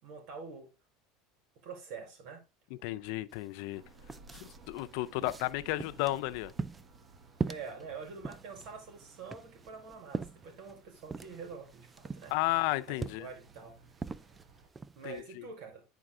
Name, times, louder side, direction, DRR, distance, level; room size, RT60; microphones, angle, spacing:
voice 1, 0.0-0.7 1.6-2.4 7.5-12.3 12.9-13.8 14.9-15.8, right 5 dB, 65° right, 4.6 m, -46 dB
voice 2, 2.8-3.8 4.4-6.5 12.3-13.3 15.0-15.4, left 18 dB, 65° left, 0.5 m, -33 dB
sound 1, 3.3-3.4 3.7-15.2, right 4 dB, 15° right, 0.4 m, -42 dB
sound 2, 3.7-14.7, right 4 dB, 40° right, 1.3 m, -58 dB
9.7 x 4.6 x 3.7 m
supercardioid pair, 135°, 0 cm